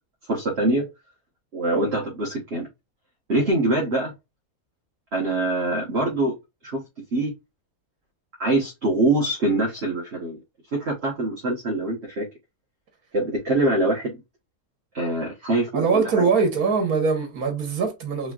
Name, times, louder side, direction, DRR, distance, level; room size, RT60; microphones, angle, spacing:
voice 1, 0.3-0.8 1.5-2.7 3.3-4.1 5.1-6.3 6.6-6.8 7.1-7.3 8.4-10.4 10.7-12.3 13.1-14.1 14.9-16.3, right 2 dB, 45° right, 1.5 m, -24 dB
voice 2, 15.7-18.3, right 5 dB, 80° right, 1.8 m, -22 dB
4.9 x 3.0 x 2.5 m
omnidirectional pair, 1.6 m